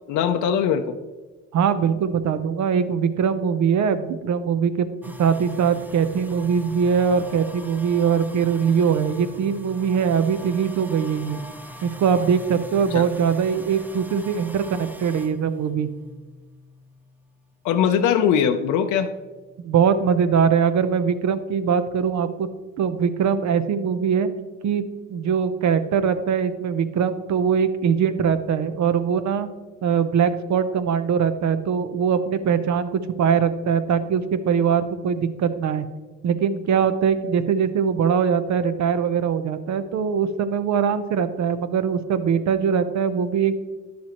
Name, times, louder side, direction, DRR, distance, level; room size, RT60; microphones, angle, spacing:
voice 1, 0.1-1.0 12.9-13.0 17.6-19.1, left 8 dB, 90° left, 5 dB, 0.6 m, -21 dB
voice 2, 1.5-4.9 5.2-11.4 11.8-15.9 19.6-22.5 22.8-24.3 24.6-29.5 29.8-35.9 36.2-43.5, right 7 dB, 65° right, 11 dB, 0.8 m, -22 dB
sound 1, 5.0-17.7 18.0-20.5, equal, 5° right, 0.6 m, -43 dB
10.5 x 7.2 x 3.0 m, 1.2 s
cardioid pair, 90°, 30 cm